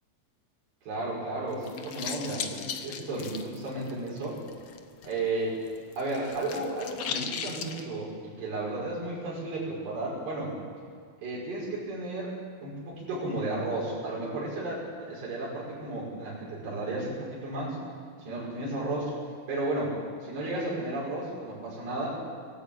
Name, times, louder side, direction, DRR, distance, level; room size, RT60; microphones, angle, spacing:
voice 1, 0.8-4.4 5.0-5.6 6.0-10.5 11.2-12.3 12.6-17.8 18.2-19.1 19.5-19.9 20.2-22.2, right 2 dB, 80° right, -6 dB, 7.9 m, -33 dB
sound 1, 1.5-5.2 5.5-7.8, left 7 dB, 90° left, 1.3 m, -38 dB
24.5 x 15.0 x 8.8 m, 2.1 s
omnidirectional pair, 4.7 m